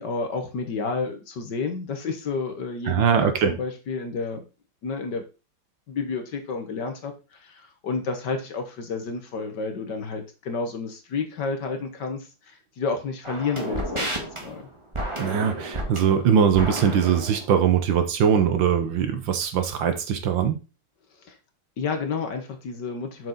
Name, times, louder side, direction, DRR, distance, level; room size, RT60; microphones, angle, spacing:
voice 1, 0.0-4.4 4.8-5.2 5.9-14.7 21.2-21.4 21.8-23.3, left 4 dB, 55° left, 6 dB, 1.8 m, -30 dB
voice 2, 2.9-3.6 15.2-20.6, right 7 dB, 65° right, 8 dB, 1.6 m, -21 dB
sound 1, 13.2-17.5, right 1 dB, 15° right, 1.7 m, -31 dB
7.3 x 6.2 x 4.1 m, 0.30 s
omnidirectional pair, 2.4 m